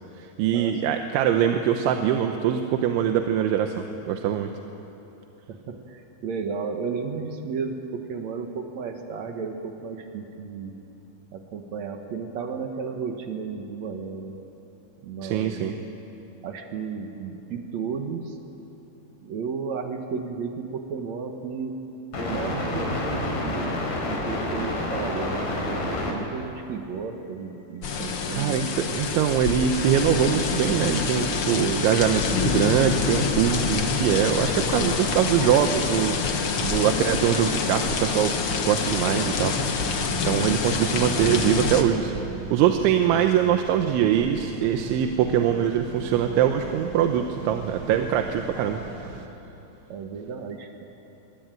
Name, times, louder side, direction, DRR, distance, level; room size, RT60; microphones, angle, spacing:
voice 1, 0.2-4.5 15.2-15.7 28.3-38.3 38.6-39.5 40.2-42.1 42.5-48.8, right 9 dB, 90° right, 5 dB, 3.4 m, -23 dB
voice 2, 5.5-10.7 11.3-14.3 15.0-15.6 16.4-18.4 19.2-21.8 22.2-23.8 24.1-28.7 49.9-50.8, right 5 dB, 65° right, 4 dB, 1.7 m, -33 dB
sound 1, 22.1-26.1 27.2-27.4 28.1-30.1 30.5-37.6, left 2 dB, 60° left, 6.0 m, -33 dB
sound 2, 27.8-41.8, left 5 dB, 80° left, 1.2 m, -26 dB
sound 3, 39.9-49.3, right 5 dB, 50° right, 1.7 m, -39 dB
25.0 x 24.0 x 9.2 m, 3.0 s
omnidirectional pair, 5.2 m